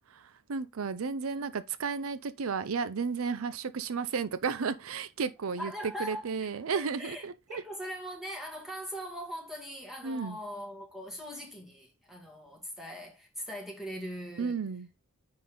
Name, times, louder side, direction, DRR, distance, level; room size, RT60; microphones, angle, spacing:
voice 1, 0.1-7.6 10.0-10.4 14.4-14.9, right 5 dB, 80° right, 0.5 m, -33 dB
voice 2, 1.0-1.5 5.6-14.6, equal, ahead, 2.2 m, -41 dB
9.4 x 3.9 x 3.8 m
head